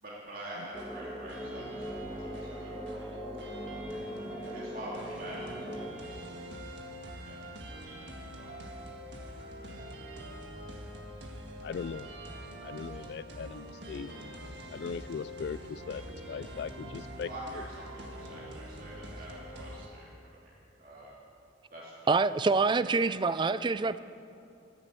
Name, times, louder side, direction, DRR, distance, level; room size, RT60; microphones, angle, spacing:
voice 1, 0.0-3.1 4.5-5.5 7.2-7.4 7.7-8.7 17.2-21.1 21.7-22.1 22.8-23.4, right 1 dB, 50° right, -6 dB, 2.9 m, -46 dB
sound 1, 0.7-5.9, equal, ahead, 1.5 m, -41 dB
sound 2, 0.7-19.9, equal, 65° right, 1.8 m, -44 dB
voice 2, 11.6-12.1 12.6-14.1 14.7-16.0 16.3-17.3, left 6 dB, 60° left, 17 dB, 0.3 m, -39 dB
voice 3, 22.1-24.0, right 4 dB, 25° right, 15 dB, 0.3 m, -26 dB
15.0 x 11.0 x 8.3 m, 2.8 s
head